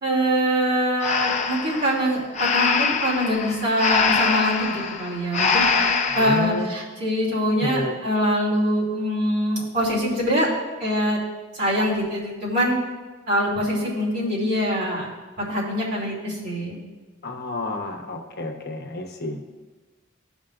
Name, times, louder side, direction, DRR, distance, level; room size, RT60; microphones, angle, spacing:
voice 1, 0.0-10.5 10.8-11.2 11.5-12.8 13.3-15.1 15.4-16.8, equal, 55° right, -6 dB, 2.7 m, -24 dB
Breathing, 1.0-6.5, left 5 dB, 35° left, 0.6 m, -23 dB
voice 2, 6.2-6.7 7.6-8.0 17.2-19.4, left 2 dB, 55° left, 2 dB, 1.0 m, -30 dB
14.0 x 5.3 x 2.5 m, 1.3 s
head